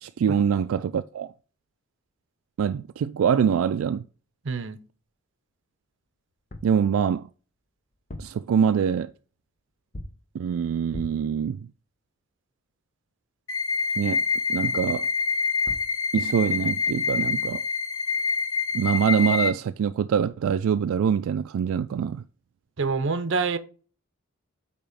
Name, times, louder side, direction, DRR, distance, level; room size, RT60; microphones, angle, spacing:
voice 1, 0.0-1.3 2.6-4.0 6.6-7.3 8.2-9.1 10.3-11.6 14.0-14.2 14.5-15.1 16.1-17.6 18.7-22.2, right 7 dB, 90° right, 0.3 m, -24 dB
voice 2, 4.4-4.8 22.8-23.6, right 4 dB, 60° right, 0.7 m, -26 dB
sound 1, 6.3-6.8 7.9-8.5 9.9-10.3 10.9-11.3 15.4-15.5 15.7-16.0, left 1 dB, 40° left, 0.8 m, -40 dB
sound 2, 13.5-19.5, left 5 dB, 85° left, 1.2 m, -26 dB
8.7 x 3.0 x 5.0 m
head